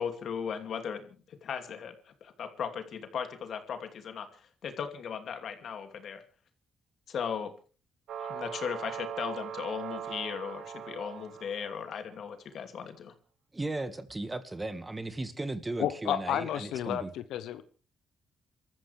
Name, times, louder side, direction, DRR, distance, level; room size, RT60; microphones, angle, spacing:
voice 1, 0.0-6.2 7.1-7.5 8.2-13.1, left 7 dB, 65° left, 2.7 m, -37 dB
sound 1, 8.1-12.1, right 8 dB, 75° right, 1.4 m, -40 dB
voice 2, 13.5-17.1, right 2 dB, 20° right, 1.9 m, -36 dB
voice 3, 15.8-17.6, left 11 dB, 85° left, 1.0 m, -31 dB
28.0 x 14.0 x 3.5 m
cardioid pair, 75°, 0 cm